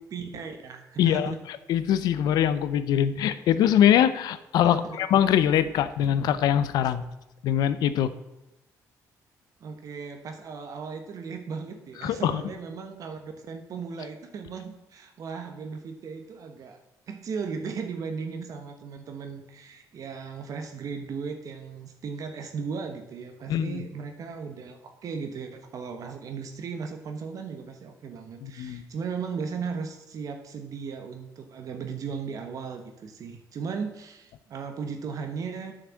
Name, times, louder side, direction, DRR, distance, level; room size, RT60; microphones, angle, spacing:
voice 1, 0.1-1.4 4.6-5.0 9.6-35.7, right 5 dB, 60° right, 6 dB, 1.2 m, -36 dB
voice 2, 1.0-1.3 1.7-7.0 7.4-8.1 12.0-12.4 23.5-23.8 28.4-28.8, left 10 dB, 80° left, 13 dB, 0.7 m, -23 dB
8.0 x 6.6 x 7.5 m, 0.97 s
cardioid pair, 100°, 7 cm